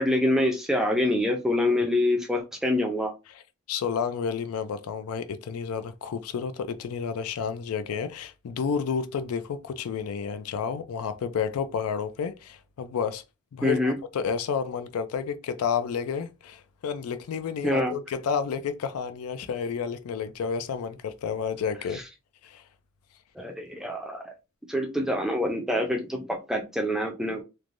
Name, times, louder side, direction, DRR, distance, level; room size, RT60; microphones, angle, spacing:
voice 1, 0.0-3.1 13.6-14.0 17.6-17.9 21.9-22.0 23.4-24.3 24.7-27.4, left 1 dB, ahead, 0.4 m, -26 dB
voice 2, 3.7-13.2 13.5-22.0 22.4-22.6, left 6 dB, 85° left, 0.4 m, -30 dB
3.2 x 2.1 x 2.5 m
head